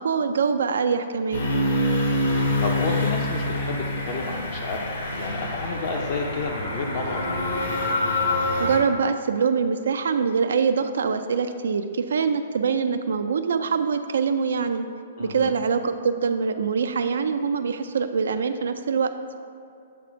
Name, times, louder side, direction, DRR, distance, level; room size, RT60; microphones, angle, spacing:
voice 1, 0.0-1.5 8.6-14.9 15.2-19.1, right 5 dB, 85° right, 8 dB, 0.3 m, -24 dB
sound 1, 1.3-8.8, left 1 dB, 70° left, 1.3 m, -26 dB
voice 2, 2.2-7.6 15.2-15.6, left 4 dB, 40° left, 1 dB, 0.5 m, -31 dB
7.8 x 3.4 x 4.9 m, 2.5 s
hypercardioid pair, 170°, 0 cm